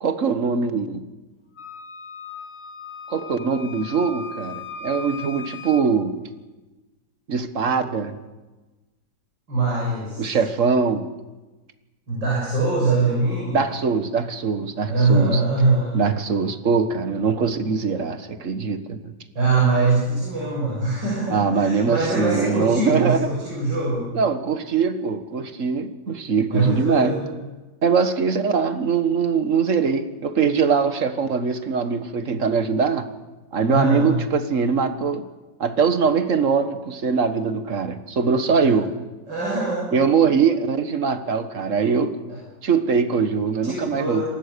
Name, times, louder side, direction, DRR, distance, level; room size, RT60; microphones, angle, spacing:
voice 1, 0.0-1.0 3.1-6.2 7.3-8.1 10.2-11.0 13.5-15.4 15.9-19.1 21.3-23.3 24.1-27.1 27.8-33.1 33.5-35.2 35.6-38.9 39.9-42.1 42.6-44.2, right 5 dB, 45° right, 10 dB, 1.7 m, -22 dB
Wind instrument woodwind instrument, 1.6-5.9, left 4 dB, 40° left, 1.5 m, -37 dB
voice 2, 9.5-10.4 12.1-13.6 14.9-16.0 19.4-24.1 26.5-27.3 33.7-34.2 38.6-38.7 39.3-39.9 42.3-42.4 43.6-44.2, right 3 dB, 90° right, -5 dB, 7.3 m, -22 dB
27.0 x 19.5 x 6.8 m, 1.2 s
omnidirectional pair, 1.9 m